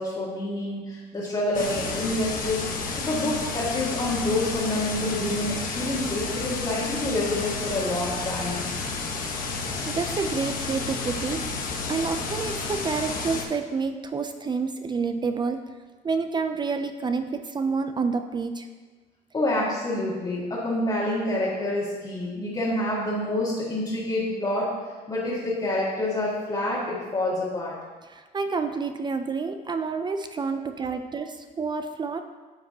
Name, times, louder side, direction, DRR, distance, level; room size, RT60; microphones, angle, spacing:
voice 1, 0.0-2.7 3.0-8.6 19.3-24.8 25.1-27.8 30.5-30.6, left 1 dB, 25° left, -7 dB, 1.6 m, -27 dB
sound 1, 1.5-13.4, left 4 dB, 55° left, 1.0 m, -31 dB
voice 2, 9.9-11.4 11.9-15.6 16.0-18.7 28.1-32.2, right 4 dB, 25° right, 8 dB, 0.4 m, -29 dB
9.3 x 5.7 x 2.8 m, 1.4 s
cardioid pair, 110°, 17 cm